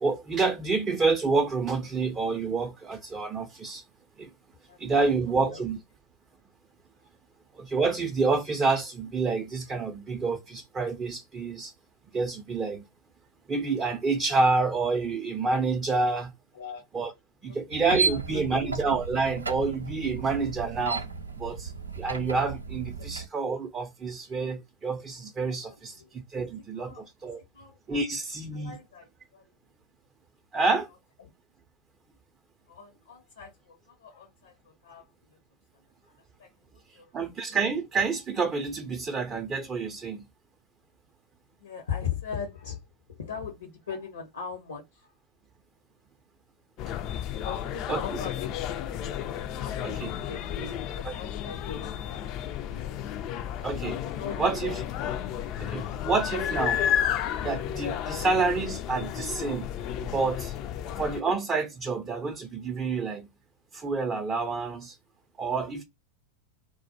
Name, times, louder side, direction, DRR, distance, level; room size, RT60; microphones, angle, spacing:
voice 1, 0.0-3.8 4.2-4.3 4.8-5.8 7.6-11.7 12.1-12.8 13.5-16.3 16.9-17.1 17.4-21.0 21.4-21.7 22.0-27.4 27.9-28.8 30.5-30.9 37.1-40.2 47.9-48.0 49.8-50.1 51.0-51.1 53.6-54.0 54.4-54.8 55.6-56.8 57.4-59.7 60.0-60.5 61.0-63.3 63.7-65.0 65.4-65.8, right 4 dB, 20° right, 0.4 m, -28 dB
voice 2, 4.7-5.1 5.5-5.7 16.5-16.8 17.5-18.7 23.0-23.1 25.5-26.1 26.8-28.0 28.5-29.5 31.2-31.3 32.7-35.1 36.0-37.1 41.5-42.8 43.1-45.1 46.8-46.9 47.4-52.9 54.0-54.7, left 7 dB, 70° left, 0.7 m, -41 dB
sound 1, 17.7-23.3, right 4 dB, 75° right, 0.4 m, -33 dB
sound 2, 46.8-61.2, left 10 dB, 40° left, 0.3 m, -32 dB
2.1 x 2.1 x 2.8 m
figure-of-eight pair, 90°, 0 cm